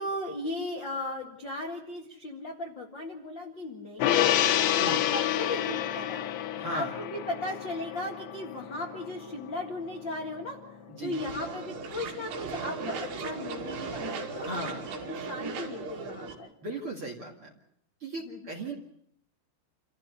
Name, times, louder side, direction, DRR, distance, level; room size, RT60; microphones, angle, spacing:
voice 1, 0.0-4.3 4.7-10.6 11.0-14.6 15.1-16.5 18.2-18.4, left 1 dB, 60° left, 2 dB, 1.2 m, -37 dB
Gong, 4.0-10.6 11.0-11.1, left 11 dB, 80° left, 3.3 m, -29 dB
voice 2, 6.6-6.9 10.9-11.2 14.4-14.9 16.6-17.5 18.0-18.7, right 2 dB, 45° right, 2 dB, 1.8 m, -36 dB
sound 1, 11.1-16.3, right 4 dB, 65° right, 4.4 m, -37 dB
28.5 x 14.5 x 8.4 m, 0.75 s
omnidirectional pair, 5.4 m